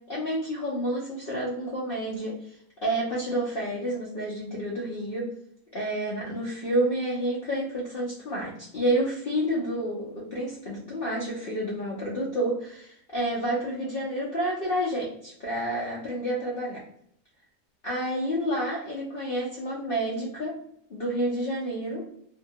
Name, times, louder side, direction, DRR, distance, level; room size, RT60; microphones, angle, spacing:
voice 1, 0.0-5.3 5.7-16.8 17.8-20.5 20.9-22.0, right 1 dB, 80° left, -4 dB, 0.5 m, -29 dB
2.7 x 2.2 x 2.7 m, 0.71 s
omnidirectional pair, 1.8 m